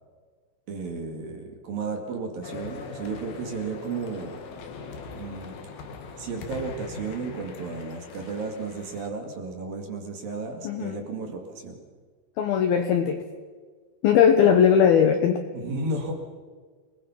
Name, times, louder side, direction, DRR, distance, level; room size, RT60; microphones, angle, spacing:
voice 1, 0.7-4.4 5.1-5.6 6.2-11.8 15.5-16.1, right 3 dB, 50° right, 3 dB, 3.4 m, -33 dB
sound 1, 2.4-9.1, left 4 dB, 60° left, 3.2 m, -41 dB
voice 2, 10.6-11.0 12.4-13.2 14.0-15.4, left 8 dB, 75° left, 6 dB, 2.3 m, -19 dB
28.5 x 20.5 x 5.8 m, 1.5 s
omnidirectional pair, 5.9 m